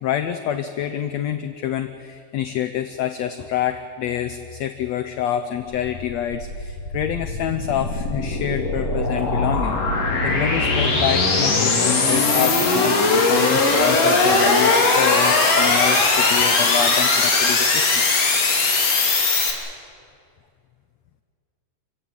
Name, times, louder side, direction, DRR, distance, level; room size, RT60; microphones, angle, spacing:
voice 1, 0.0-9.8 10.2-18.0, left 10 dB, 70° left, 8 dB, 1.7 m, -27 dB
sound 1, 6.0-19.5, left 3 dB, 50° left, 3.7 m, -19 dB
28.0 x 16.0 x 8.8 m, 2.4 s
omnidirectional pair, 3.9 m